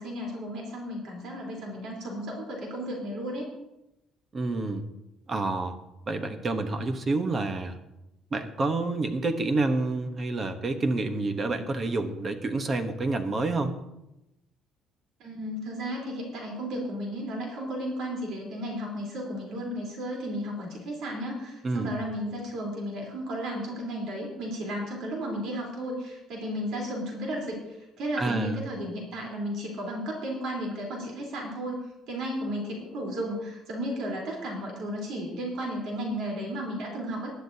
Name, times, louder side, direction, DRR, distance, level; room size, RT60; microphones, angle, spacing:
voice 1, 0.0-3.5 15.2-31.8 32.1-37.3, equal, 60° right, -1 dB, 3.7 m, -34 dB
voice 2, 4.3-4.8 5.3-5.8 6.1-7.8 8.3-13.7 21.6-21.9 28.2-28.6, right 3 dB, 25° right, 8 dB, 1.0 m, -28 dB
19.5 x 11.5 x 2.8 m, 0.90 s
cardioid pair, 170°, 0 cm